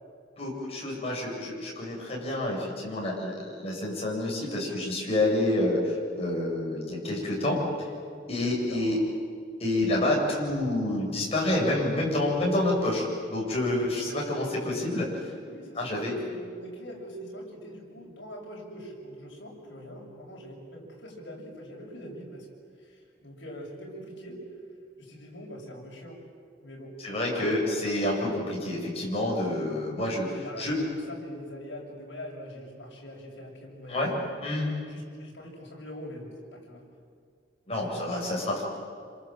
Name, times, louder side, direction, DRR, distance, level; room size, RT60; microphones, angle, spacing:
voice 1, 0.4-7.9 8.3-9.0 9.6-15.1 15.8-16.2 27.0-30.3 30.6-30.8 33.9-34.1 34.4-34.7 37.7-38.6, left 1 dB, 35° left, -3 dB, 7.9 m, -28 dB
voice 2, 8.4-9.0 13.8-14.5 15.5-22.5 22.8-24.4 25.0-26.2 26.6-27.0 27.3-27.6 30.2-34.3 34.8-36.8 37.7-38.6, equal, 65° left, -1 dB, 7.4 m, -43 dB
28.0 x 26.5 x 7.8 m, 2.2 s
head